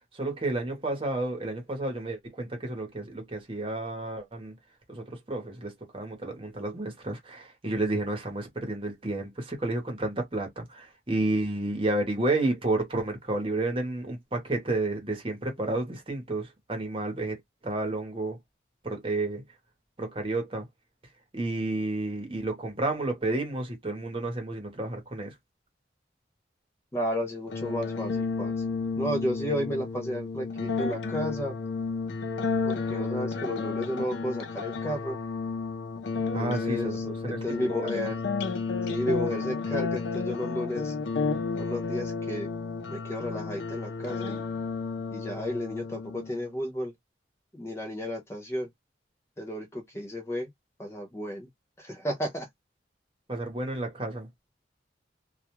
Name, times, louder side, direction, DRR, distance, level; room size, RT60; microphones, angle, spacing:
voice 1, 0.1-4.6 4.9-18.4 18.8-19.4 20.0-20.7 21.3-25.3 36.3-37.9 53.3-54.3, right 2 dB, 30° right, 0.9 m, -31 dB
voice 2, 26.9-28.5 29.0-31.5 32.6-35.2 36.4-38.2 38.9-41.0 41.6-42.5 42.9-44.4 45.1-46.9 47.5-48.7 49.4-50.5 50.8-51.5 51.8-52.5, equal, 15° left, 0.4 m, -32 dB
sound 1, 27.5-46.5, left 4 dB, 85° left, 0.5 m, -32 dB
2.3 x 2.2 x 2.9 m
head